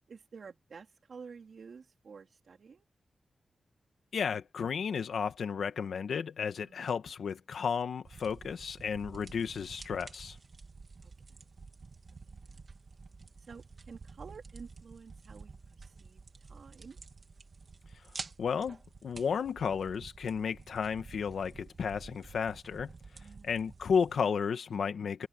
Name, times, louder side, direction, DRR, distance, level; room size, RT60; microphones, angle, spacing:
voice 1, 0.1-2.9 6.6-6.9 11.0-11.5 12.3-12.6 13.4-17.0 23.2-23.5, right 5 dB, 60° right, 3.6 m, -51 dB
voice 2, 4.1-10.4 18.4-22.9 23.4-25.3, left 6 dB, 90° left, 1.7 m, -33 dB
sound 1, 8.0-24.2, right 4 dB, 40° right, 2.6 m, -50 dB
wide cardioid pair, 155°, 0 cm